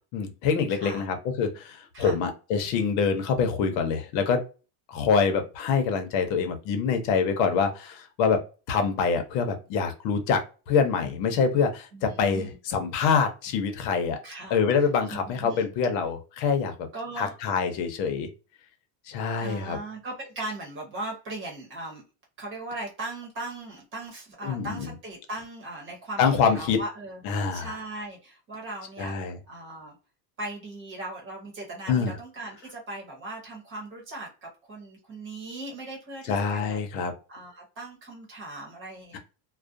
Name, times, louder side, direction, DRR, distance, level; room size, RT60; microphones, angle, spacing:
voice 1, 0.1-4.4 4.9-8.4 8.7-14.2 14.5-16.9 17.2-18.3 19.1-19.8 24.4-24.9 26.2-26.8 27.2-27.8 29.0-29.4 31.9-32.1 36.3-37.1, left 5 dB, 90° left, 7 dB, 0.8 m, -25 dB
voice 2, 0.7-1.1 1.9-2.2 11.9-12.6 14.2-15.7 16.9-17.3 19.4-22.0 22.4-29.1 29.5-29.9 30.4-36.8 37.3-39.2, right 2 dB, 25° right, -1 dB, 0.9 m, -38 dB
2.4 x 2.1 x 2.5 m, 0.33 s
cardioid pair, 175°, 48 cm